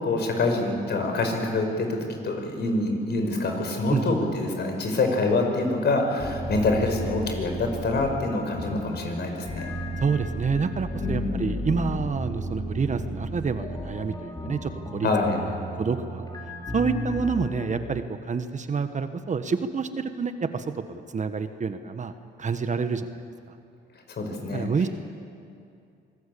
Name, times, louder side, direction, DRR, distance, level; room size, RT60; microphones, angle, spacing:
voice 1, 0.0-9.7 11.0-11.4 15.0-15.4 23.9-24.7, left 2 dB, 55° left, 3 dB, 5.4 m, -26 dB
sound 1, 6.2-17.8, equal, 20° left, 5.3 m, -34 dB
voice 2, 10.0-15.1 15.8-16.3 16.7-22.1 22.4-23.2 24.5-24.9, right 5 dB, 40° right, 9 dB, 1.3 m, -28 dB
25.0 x 18.5 x 8.5 m, 2.5 s
cardioid pair, 90°, 20 cm